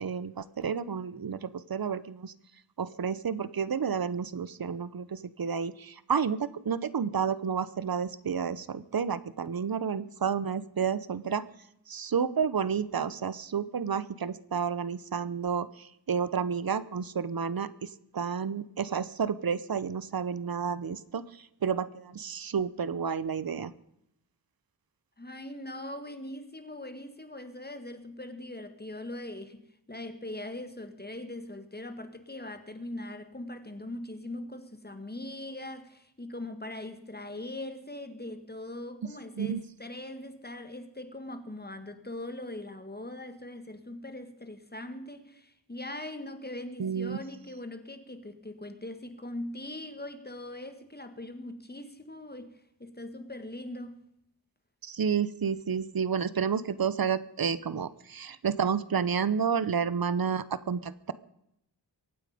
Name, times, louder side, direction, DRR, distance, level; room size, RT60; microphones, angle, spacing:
voice 1, 0.0-2.3 2.8-11.4 11.9-23.7 39.4-39.6 46.8-47.2 54.8-61.1, right 6 dB, 55° right, 0.9 m, -30 dB
voice 2, 25.2-54.0, left 1 dB, 25° left, 1.9 m, -41 dB
23.5 x 9.0 x 5.1 m
wide cardioid pair, 65°, 42 cm